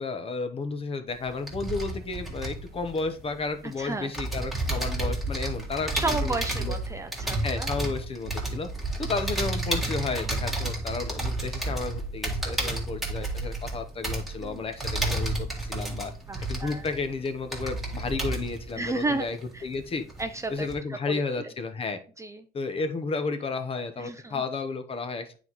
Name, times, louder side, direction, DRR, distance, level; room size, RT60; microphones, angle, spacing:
voice 1, 0.0-6.7 7.4-8.7 9.0-16.1 16.4-19.4 19.6-20.0 20.5-22.0 22.5-25.4, left 4 dB, 35° left, 9 dB, 0.8 m, -32 dB
sound 1, 1.1-3.7 4.1-19.8 20.1-20.7, right 2 dB, ahead, 1.8 m, -31 dB
voice 2, 3.8-4.1 5.9-7.7 10.6-10.7 14.4-14.6 16.3-16.9 18.8-19.3 19.5-19.7 20.2-21.5 22.2-22.5 24.0-24.4, right 3 dB, 15° right, 8 dB, 0.5 m, -33 dB
9.0 x 4.1 x 3.0 m, 0.39 s
cardioid pair, 110°, 17 cm